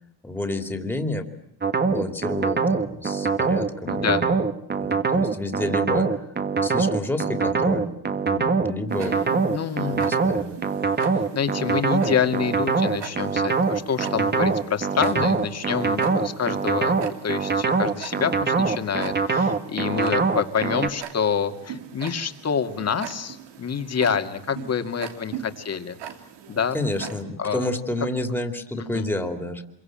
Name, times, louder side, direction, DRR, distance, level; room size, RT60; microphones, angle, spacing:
voice 1, 0.2-1.4 1.8-4.4 4.8-6.2 6.6-7.9 8.2-9.5 9.9-10.6 15.2-15.3 26.7-29.6, left 1 dB, 5° left, 6 dB, 2.8 m, -30 dB
sound 1, 1.6-20.9, right 4 dB, 25° right, 1.7 m, -23 dB
voice 2, 3.8-4.2 9.5-10.0 11.3-16.9 17.2-26.0 26.5-26.8 27.4-27.7 28.9-29.1, left 7 dB, 40° left, 7 dB, 2.3 m, -27 dB
Tick-tock, 8.9-27.2, right 9 dB, 85° right, 2.8 m, -41 dB
26.5 x 23.5 x 8.9 m, 0.75 s
cardioid pair, 125°, 40 cm